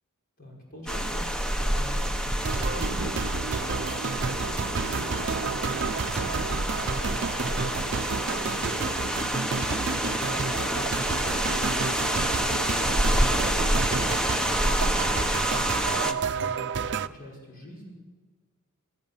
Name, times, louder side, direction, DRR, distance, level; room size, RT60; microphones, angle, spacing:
voice 1, 0.4-12.2 12.8-17.9, left 1 dB, 40° left, -2 dB, 5.6 m, -46 dB
sound 1, 0.9-16.1, equal, 5° left, 1.1 m, -28 dB
sound 2, 2.4-17.1, right 5 dB, 55° right, 0.7 m, -31 dB
28.0 x 15.5 x 7.2 m, 1.4 s
head